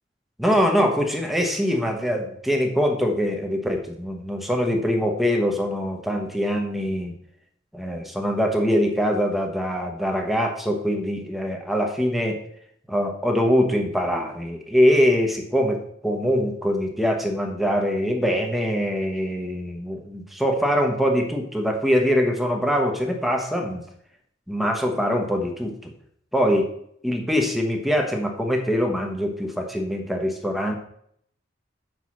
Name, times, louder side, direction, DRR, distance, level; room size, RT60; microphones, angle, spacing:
voice 1, 0.4-7.1 7.7-12.4 12.9-23.8 24.5-25.9 26.3-26.7 27.0-30.8, equal, ahead, 3 dB, 1.0 m, -23 dB
6.1 x 4.4 x 6.2 m, 0.69 s
head